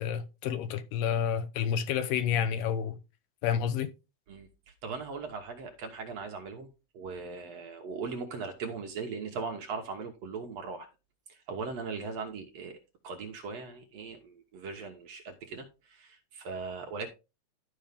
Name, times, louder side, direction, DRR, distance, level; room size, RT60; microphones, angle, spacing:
voice 1, 0.0-3.0 3.4-3.9, left 8 dB, 90° left, 2.6 m, -29 dB
voice 2, 4.3-10.9 11.3-12.8 13.0-17.1, right 4 dB, 65° right, 1.8 m, -39 dB
12.5 x 5.3 x 3.5 m
omnidirectional pair, 3.9 m